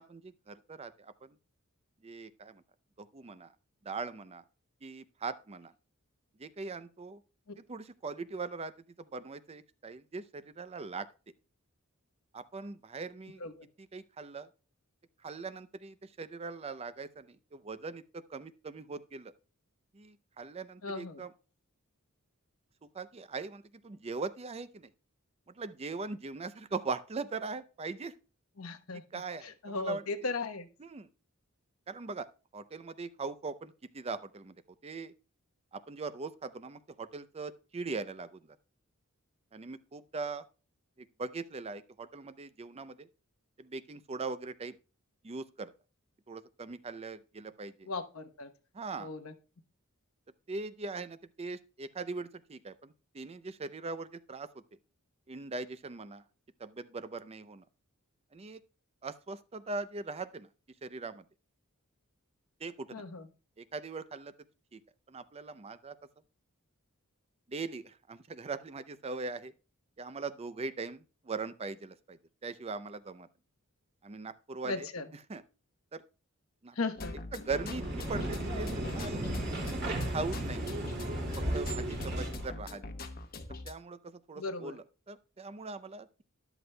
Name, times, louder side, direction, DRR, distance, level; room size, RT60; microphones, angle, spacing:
voice 1, 0.0-1.4 2.0-2.6 3.0-3.5 3.8-4.4 4.8-5.7 6.4-7.2 7.6-8.7 9.0-11.1 12.3-13.4 13.9-14.5 15.2-19.3 19.9-21.3 22.9-24.9 25.6-28.1 29.1-30.0 30.8-31.1 31.9-32.3 32.5-34.5 34.8-35.1 35.7-38.4 39.5-40.5 41.0-43.1 43.6-44.7 45.2-45.7 46.3-47.9 48.7-49.1 50.5-54.5 55.3-56.2 56.6-57.6 58.3-58.6 59.0-60.5 60.8-61.2 62.6-63.0 63.6-64.3 64.7-64.8 65.1-66.0 67.5-69.5 70.0-73.3 74.0-74.9 75.3-75.4 75.9-76.0 76.6-76.7 77.3-79.2 79.5-80.7 81.0-81.3 81.5-82.8 83.7-86.2, right 4 dB, 30° right, 0.5 m, -40 dB
voice 2, 20.8-21.2 28.6-29.0 29.4-30.7 47.8-48.5 49.0-49.3 62.9-63.3 74.6-75.1 76.7-77.1 84.4-84.8, left 3 dB, 75° left, 1.0 m, -37 dB
sound 1, 77.0-83.7, left 2 dB, 45° left, 1.0 m, -43 dB
sound 2, 77.4-82.5, right 1 dB, 55° right, 2.4 m, -35 dB
13.0 x 11.0 x 2.2 m
head